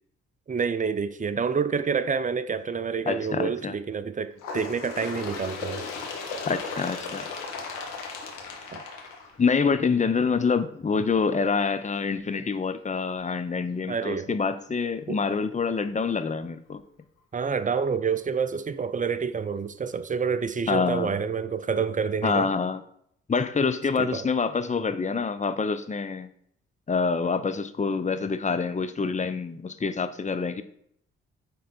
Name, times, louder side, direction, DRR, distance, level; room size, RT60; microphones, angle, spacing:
voice 1, 0.5-5.8 8.7-8.8 13.9-14.3 15.1-15.2 17.3-22.5 24.0-24.3 28.1-28.2, right 6 dB, 25° right, 0.6 m, -28 dB
voice 2, 3.1-3.7 6.5-7.3 9.4-16.8 20.7-21.1 22.2-22.8 23.3-26.3 26.9-30.6, left 5 dB, 20° left, 0.7 m, -26 dB
Bird, 4.4-9.8 10.7-10.8 11.2-11.3 12.2-12.3 13.2-13.3 14.2-14.3, left 4 dB, 70° left, 1.3 m, -36 dB
9.2 x 3.8 x 4.4 m
hypercardioid pair, 45°, 32 cm